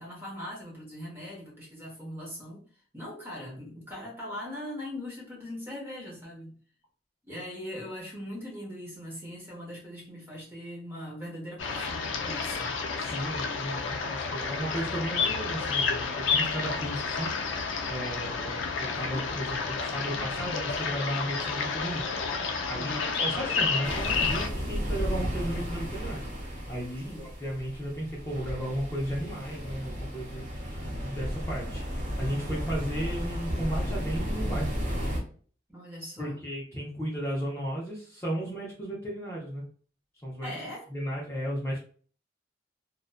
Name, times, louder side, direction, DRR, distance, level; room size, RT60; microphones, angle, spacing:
voice 1, 0.0-2.6 2.9-6.5 7.2-12.7 22.7-23.2 27.0-27.2 35.7-36.4 40.4-40.9, left 1 dB, 10° right, -4 dB, 0.9 m, -40 dB
sound 1, 11.6-24.5, left 5 dB, 70° left, 0.4 m, -30 dB
voice 2, 13.0-22.2 22.7-26.2 26.7-34.7 36.2-39.6 40.2-40.5 40.9-41.8, right 1 dB, 15° left, -6 dB, 0.5 m, -35 dB
sound 2, 23.8-35.2, equal, 40° right, 0.7 m, -33 dB
2.5 x 2.1 x 2.4 m, 0.42 s
head